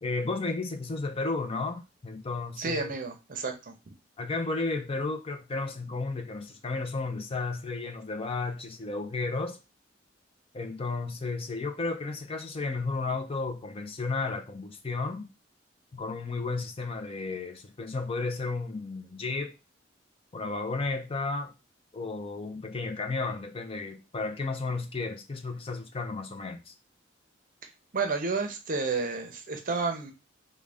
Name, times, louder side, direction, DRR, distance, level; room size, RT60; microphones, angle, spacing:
voice 1, 0.0-2.9 4.2-9.6 10.5-15.3 15.9-19.5 20.3-21.5 21.9-26.7, left 3 dB, 30° left, 0.5 m, -33 dB
voice 2, 2.6-3.8 27.9-30.1, right 4 dB, 45° right, 0.6 m, -31 dB
3.7 x 2.2 x 3.4 m
head